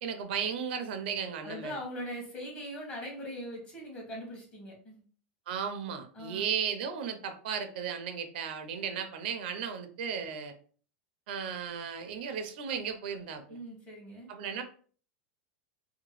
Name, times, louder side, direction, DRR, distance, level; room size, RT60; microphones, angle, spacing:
voice 1, 0.0-1.8 5.5-10.5 11.3-13.6 14.3-14.6, right 7 dB, 75° right, 7 dB, 0.5 m, -35 dB
voice 2, 1.4-5.0 6.1-6.5 13.5-14.3, equal, 25° left, -1 dB, 1.1 m, -41 dB
2.8 x 2.2 x 3.0 m, 0.43 s
supercardioid pair, 155°, 6 cm